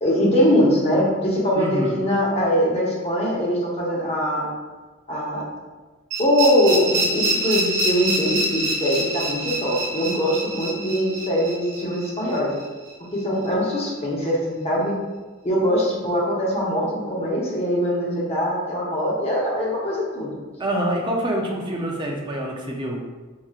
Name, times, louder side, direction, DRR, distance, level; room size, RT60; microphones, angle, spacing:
voice 1, 0.0-4.5 5.1-5.4 6.2-12.5 13.1-14.9 15.4-20.4, equal, 30° left, -4 dB, 0.9 m, -22 dB
voice 2, 1.6-2.1 20.6-23.0, right 1 dB, 20° right, -1 dB, 0.5 m, -26 dB
sound 1, 6.1-12.9, right 1 dB, 65° right, 0.9 m, -26 dB
4.6 x 2.9 x 2.4 m, 1.3 s
head